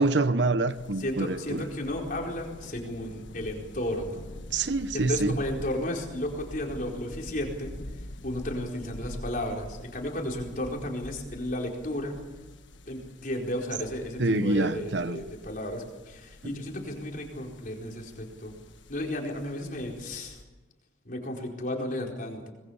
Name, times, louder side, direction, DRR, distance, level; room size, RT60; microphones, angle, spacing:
voice 1, 0.0-1.6 4.5-5.3 14.2-15.2, right 2 dB, 70° right, 1.0 m, -26 dB
sound 1, 0.7-20.4, left 1 dB, 90° left, 1.4 m, -45 dB
voice 2, 1.0-4.2 4.9-7.8 8.2-12.2 12.9-18.6 18.9-20.4 21.0-22.5, left 1 dB, 45° left, 4.5 m, -33 dB
25.5 x 20.5 x 7.2 m
head